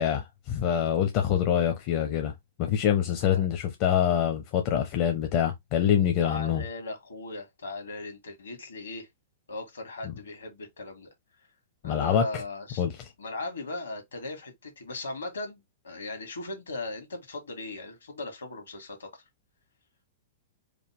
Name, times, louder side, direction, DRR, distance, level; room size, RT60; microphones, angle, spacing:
voice 1, 0.0-2.3 2.6-6.6 10.0-10.1 11.8-12.4 12.8-12.9, left 9 dB, 40° left, 0.8 m, -25 dB
voice 2, 6.2-9.1 9.5-11.1 11.8-12.8 13.2-19.2, left 2 dB, 70° left, 1.7 m, -38 dB
5.0 x 2.3 x 3.5 m
figure-of-eight pair, 100°, 0 cm